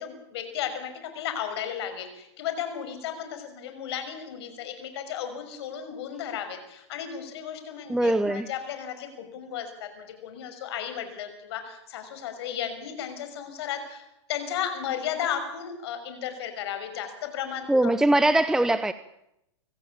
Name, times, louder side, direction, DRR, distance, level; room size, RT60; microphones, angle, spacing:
voice 1, 0.0-17.9, left 9 dB, 65° left, 8 dB, 6.0 m, -34 dB
voice 2, 7.9-8.5 17.7-18.9, right 1 dB, 5° right, 13 dB, 0.8 m, -21 dB
25.5 x 15.0 x 8.7 m, 0.83 s
hypercardioid pair, 120°, 15 cm